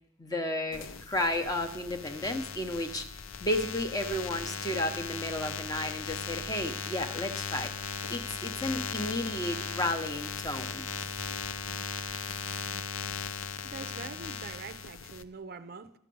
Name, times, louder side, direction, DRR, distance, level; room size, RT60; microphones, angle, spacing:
voice 1, 0.2-3.1 3.4-10.8, left 1 dB, 15° left, 0.7 m, -33 dB
sound 1, 0.7-15.2, left 6 dB, 80° left, 0.6 m, -38 dB
voice 2, 13.6-15.9, right 4 dB, 45° right, 0.4 m, -44 dB
12.0 x 8.8 x 5.3 m
head